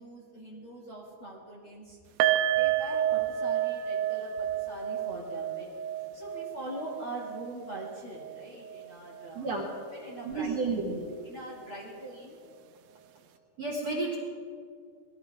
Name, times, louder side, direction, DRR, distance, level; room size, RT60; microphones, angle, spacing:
voice 1, 0.0-2.0 2.5-9.6 9.9-10.6 11.2-12.4, right 1 dB, 40° left, -5 dB, 2.1 m, -43 dB
sound 1, 2.2-9.4 9.7-9.9 10.2-10.3, right 11 dB, 85° right, 3.0 m, -31 dB
voice 2, 9.3-9.7 10.2-11.0 13.6-14.2, right 3 dB, 60° right, -2 dB, 1.7 m, -31 dB
21.5 x 14.0 x 3.5 m, 2.3 s
omnidirectional pair, 5.2 m